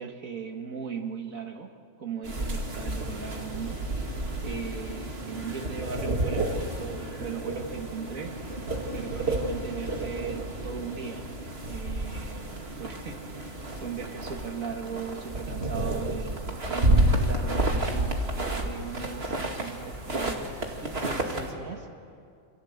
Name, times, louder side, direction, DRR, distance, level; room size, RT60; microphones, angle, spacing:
voice 1, 0.0-1.7 2.0-3.8 4.4-8.3 8.9-11.3 11.7-12.5 12.8-20.5 20.8-21.9, right 6 dB, 80° right, 2 dB, 2.2 m, -38 dB
sound 1, 2.2-21.5, right 1 dB, 45° right, 2.6 m, -30 dB
28.5 x 25.0 x 8.1 m, 2.3 s
omnidirectional pair, 1.4 m